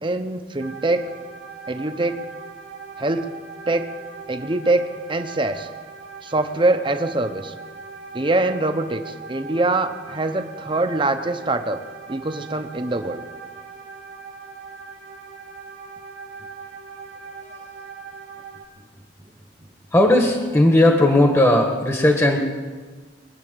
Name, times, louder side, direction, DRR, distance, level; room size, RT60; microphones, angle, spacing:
voice 1, 0.0-1.1 1.7-2.2 3.0-3.3 3.7-3.9 4.3-5.7 6.2-7.5 8.1-11.8 12.1-13.2, right 2 dB, 30° right, 8 dB, 0.9 m, -23 dB
sound 1, 0.6-18.6, right 5 dB, 75° right, 1.9 m, -40 dB
voice 2, 19.9-22.4, left 1 dB, 15° left, 2 dB, 1.3 m, -16 dB
23.0 x 8.4 x 6.9 m, 1.4 s
head